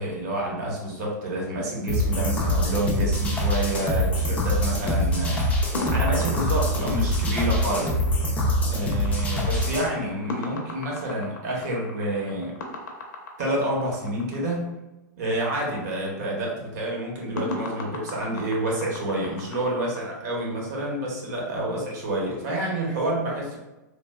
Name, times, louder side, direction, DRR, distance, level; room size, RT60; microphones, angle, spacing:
voice 1, 0.0-5.5 5.9-7.9 8.7-12.6 13.4-14.7 15.2-23.6, right 1 dB, 60° right, -2 dB, 1.0 m, -28 dB
sound 1, 1.9-9.9, equal, 15° left, 0.5 m, -24 dB
sound 2, 2.2-3.5 5.7-14.4 17.4-20.0, left 2 dB, 75° left, 0.6 m, -36 dB
3.3 x 2.2 x 2.2 m, 1.0 s
hypercardioid pair, 130°, 10 cm